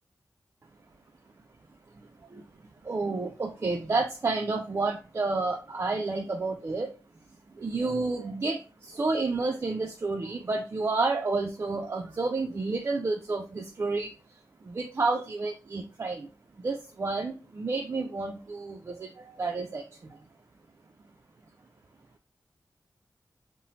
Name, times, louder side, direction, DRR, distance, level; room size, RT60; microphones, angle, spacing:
voice 1, 2.9-6.9 7.6-8.6 8.9-14.1 14.8-16.3 16.6-19.1 19.4-19.8, right 3 dB, 40° right, 3 dB, 0.3 m, -30 dB
2.6 x 2.0 x 2.9 m, 0.33 s
cardioid pair, 55°, 7 cm